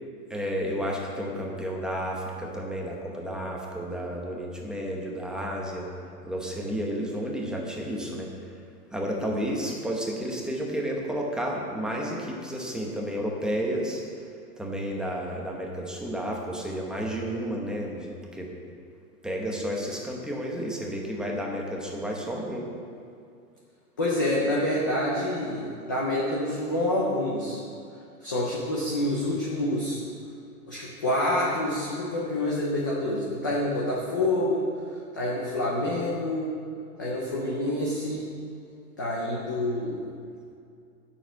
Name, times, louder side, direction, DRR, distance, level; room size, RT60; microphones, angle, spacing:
voice 1, 0.3-5.9 6.2-8.3 8.9-14.0 14.6-18.5 19.2-22.7, equal, ahead, -1 dB, 0.9 m, -31 dB
voice 2, 24.0-27.6 28.2-30.0 30.7-34.7 35.1-36.5 37.0-38.3 39.0-40.0, left 1 dB, 15° left, -5 dB, 0.3 m, -27 dB
9.1 x 6.7 x 8.0 m, 2.5 s
hypercardioid pair, 150°, 46 cm